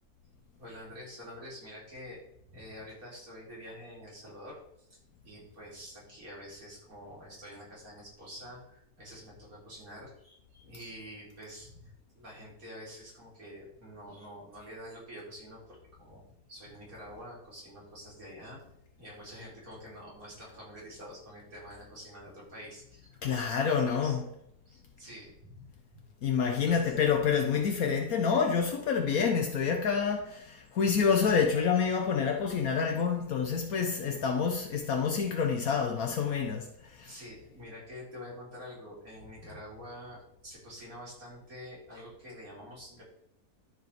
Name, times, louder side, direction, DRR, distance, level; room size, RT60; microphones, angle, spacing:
voice 1, 0.6-2.2 2.5-4.6 4.9-16.2 16.5-18.6 19.0-24.2 24.7-26.0 26.6-26.9 37.1-43.0, equal, 65° right, 4.6 m, -47 dB
voice 2, 23.2-24.2 26.2-37.1, left 6 dB, 70° left, 1.3 m, -28 dB
12.5 x 5.0 x 4.4 m
omnidirectional pair, 1.6 m